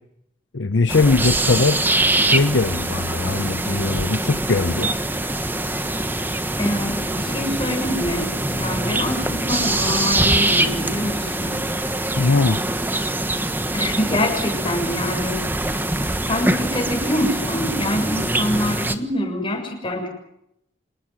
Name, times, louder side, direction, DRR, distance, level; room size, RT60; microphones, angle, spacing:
voice 1, 0.5-1.8 2.2-4.9 12.2-12.6, left 3 dB, 70° left, 11 dB, 0.8 m, -20 dB
sound 1, 0.9-19.0, right 2 dB, 10° right, 1.3 m, -23 dB
voice 2, 6.6-11.5 13.7-15.4 16.3-20.1, left 1 dB, 25° left, 2 dB, 7.5 m, -25 dB
27.0 x 19.5 x 7.6 m, 0.81 s
head